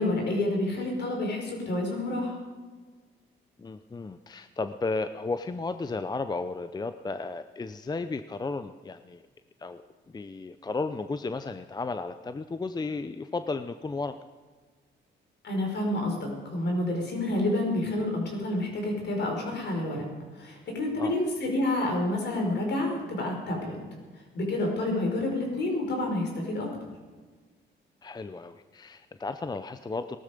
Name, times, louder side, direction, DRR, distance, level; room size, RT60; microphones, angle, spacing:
voice 1, 0.0-2.4 15.4-20.0 20.3-23.8 24.3-26.7, left 1 dB, 60° left, 1 dB, 5.3 m, -29 dB
voice 2, 3.6-9.2 9.6-9.8 10.1-14.2 21.0-21.2 28.0-30.2, left 3 dB, 20° left, 10 dB, 0.6 m, -34 dB
18.0 x 13.0 x 5.2 m, 1.4 s
cardioid pair, 90°, 20 cm